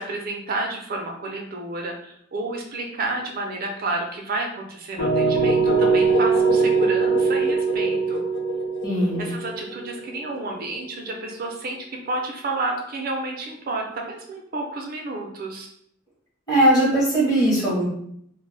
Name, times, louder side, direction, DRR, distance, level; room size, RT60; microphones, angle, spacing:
voice 1, 0.0-8.3 9.2-11.8 12.1-15.7, right 2 dB, 45° right, 1 dB, 0.4 m, -30 dB
sound 1, 5.0-10.8, right 4 dB, 65° left, 0.4 m, -21 dB
voice 2, 8.8-9.2 16.5-17.8, right 1 dB, 20° left, -6 dB, 0.8 m, -19 dB
2.1 x 2.0 x 3.2 m, 0.70 s
head